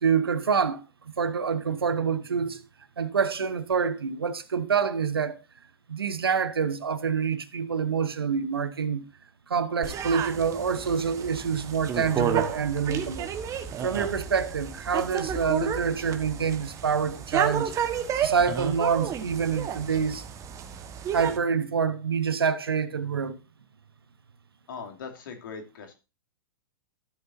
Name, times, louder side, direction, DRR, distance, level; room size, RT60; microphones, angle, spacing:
voice 1, 0.0-0.8 1.2-2.6 3.0-5.4 5.9-9.0 9.5-13.3 13.8-17.7 18.2-20.3 21.1-23.4, right 6 dB, 80° right, 1.1 m, -26 dB
sound 1, 9.8-21.4, right 8 dB, 25° right, 1.3 m, -31 dB
voice 2, 24.7-25.9, left 5 dB, 60° left, 2.8 m, -40 dB
13.5 x 8.1 x 2.7 m
hypercardioid pair, 110°, 12 cm